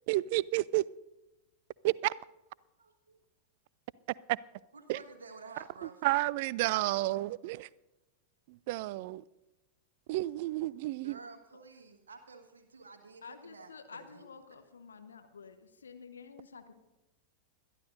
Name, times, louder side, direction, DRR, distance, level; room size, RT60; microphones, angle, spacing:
voice 1, 0.1-0.8 1.8-2.1 4.3-4.4 4.9-5.0 6.0-7.7 8.5-9.2 10.1-11.2, right 18 dB, 50° right, 0.3 m, -31 dB
voice 2, 2.8-3.2 4.7-6.0 6.9-7.2 11.0-14.3, right 4 dB, 70° right, 1.5 m, -51 dB
voice 3, 13.2-16.7, left 5 dB, 70° left, 1.1 m, -50 dB
21.0 x 12.5 x 2.6 m
figure-of-eight pair, 90°, 0 cm